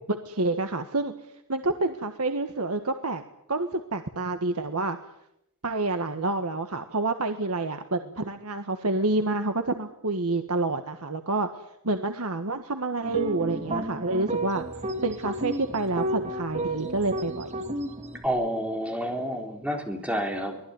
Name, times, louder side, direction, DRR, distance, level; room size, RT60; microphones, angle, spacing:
voice 1, 0.1-1.1 1.5-3.2 3.5-5.0 5.6-11.5 11.8-14.6 15.0-17.5, right 2 dB, 80° right, 7 dB, 1.6 m, -28 dB
sound 1, 13.0-18.3, right 1 dB, 30° right, 2.4 m, -32 dB
voice 2, 18.2-20.6, equal, 5° right, 3 dB, 3.8 m, -29 dB
24.5 x 18.5 x 9.6 m, 0.80 s
head